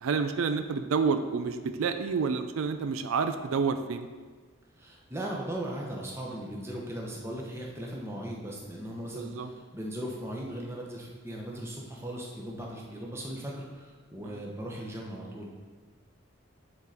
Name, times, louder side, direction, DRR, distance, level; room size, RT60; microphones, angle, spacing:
voice 1, 0.0-4.1 9.1-9.5, right 5 dB, 85° right, 9 dB, 0.4 m, -29 dB
voice 2, 4.8-15.5, right 1 dB, 10° right, -2 dB, 0.9 m, -38 dB
9.6 x 3.9 x 4.3 m, 1.4 s
head